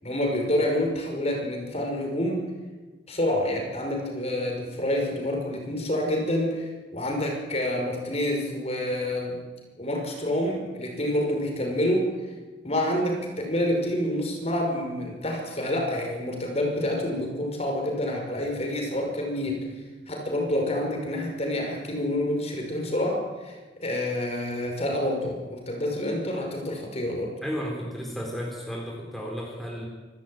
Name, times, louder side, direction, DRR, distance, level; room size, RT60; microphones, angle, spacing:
voice 1, 0.0-2.5 3.1-9.4 9.8-12.1 12.6-19.7 20.1-27.3, left 1 dB, 35° left, 2 dB, 5.6 m, -28 dB
voice 2, 27.4-29.9, equal, ahead, -2 dB, 4.1 m, -33 dB
26.5 x 13.5 x 9.2 m, 1.3 s
head